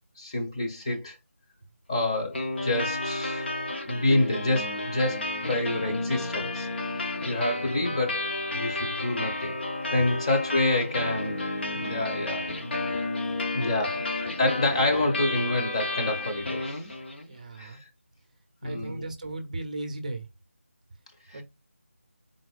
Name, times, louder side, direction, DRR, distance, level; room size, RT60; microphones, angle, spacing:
voice 1, 0.2-1.2 1.9-3.5 3.9-6.7 7.2-9.5 9.9-11.4 11.7-12.5 13.5-16.9 17.6-17.8 18.6-19.0 21.3-21.4, left 2 dB, 25° left, 1.1 m, -28 dB
sound 1, 2.3-17.3, left 2 dB, 50° left, 1.2 m, -32 dB
voice 2, 17.3-17.8 18.6-20.3 21.3-21.4, right 2 dB, 35° right, 0.7 m, -36 dB
4.2 x 4.0 x 2.4 m
figure-of-eight pair, 165°, 7 cm